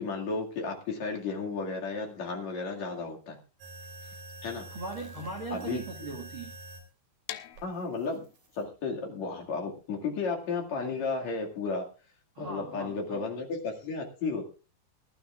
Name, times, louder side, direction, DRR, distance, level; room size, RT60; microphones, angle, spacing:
voice 1, 0.0-3.4 4.4-4.7 5.5-5.8 7.6-8.2 8.5-11.8 12.4-14.5, left 4 dB, 45° left, 0 dB, 2.7 m, -33 dB
sound 1, 3.6-6.9 7.5-8.6, right 1 dB, 50° right, 4.4 m, -46 dB
voice 2, 4.7-6.5 12.3-13.2, right 3 dB, 75° right, 1 dB, 1.1 m, -39 dB
sound 2, 7.3-13.1, left 14 dB, 85° left, 3.4 m, -48 dB
22.0 x 12.0 x 2.4 m, 0.33 s
omnidirectional pair, 5.6 m